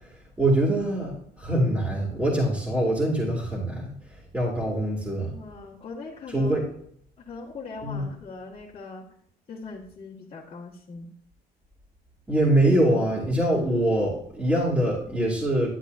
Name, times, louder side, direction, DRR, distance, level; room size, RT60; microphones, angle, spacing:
voice 1, 0.4-3.9 4.3-5.3 6.3-6.7 7.8-8.0 12.3-15.7, right 1 dB, 10° right, -6 dB, 2.7 m, -24 dB
voice 2, 5.2-6.6 7.3-9.0 9.5-11.1, left 4 dB, 35° left, -6 dB, 1.7 m, -41 dB
11.0 x 8.0 x 2.7 m, 0.66 s
cardioid pair, 110°, 17 cm